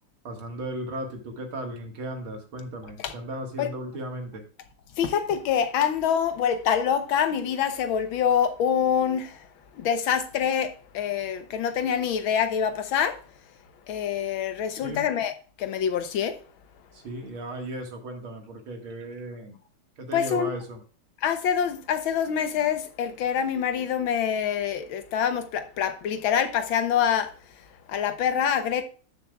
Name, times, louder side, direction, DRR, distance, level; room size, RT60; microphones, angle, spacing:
voice 1, 0.2-4.4 14.7-15.1 16.9-19.6 20.0-20.8, right 1 dB, 70° right, 2.5 m, -36 dB
voice 2, 5.0-9.5 9.7-13.2 13.9-15.3 15.6-16.4 20.1-20.5 21.2-27.3 27.9-28.8, left 8 dB, 70° left, 1.6 m, -25 dB
12.5 x 7.0 x 2.3 m
omnidirectional pair, 2.4 m